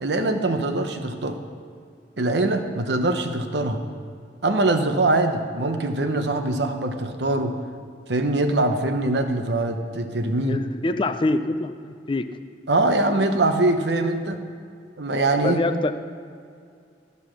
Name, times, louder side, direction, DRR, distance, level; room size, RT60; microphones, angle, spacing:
voice 1, 0.0-1.4 2.2-3.8 4.4-7.5 8.1-10.6 12.7-14.4 15.0-15.6, right 2 dB, 70° right, 6 dB, 0.9 m, -23 dB
voice 2, 10.4-12.3 15.4-15.9, left 2 dB, 30° left, 9 dB, 0.5 m, -25 dB
14.0 x 5.4 x 6.4 m, 2.3 s
head